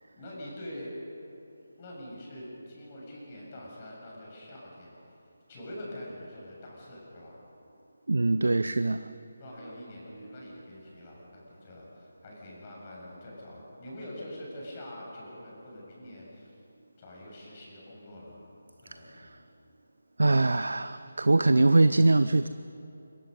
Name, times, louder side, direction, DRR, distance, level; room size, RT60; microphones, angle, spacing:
voice 1, 0.2-0.9 1.8-4.9 5.5-7.4 9.4-16.6 17.0-18.4 18.8-19.4, left 1 dB, 25° left, 7.4 m, -44 dB
voice 2, 8.1-9.2 18.9-19.4 20.2-22.5, right 2 dB, 65° right, 0.6 m, -23 dB
26.5 x 23.0 x 5.5 m
figure-of-eight pair, 150°, 0 cm